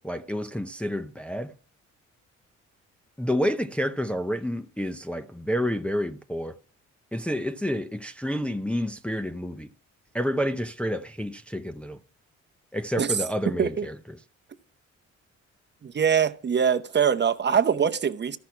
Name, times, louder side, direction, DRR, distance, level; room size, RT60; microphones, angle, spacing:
voice 1, 0.0-1.5 3.2-6.6 7.1-9.7 10.1-12.0 12.7-13.9, equal, 5° left, 0.6 m, -29 dB
voice 2, 15.8-18.4, right 7 dB, 35° right, 0.8 m, -23 dB
14.0 x 6.1 x 5.7 m
cardioid pair, 90°, 30 cm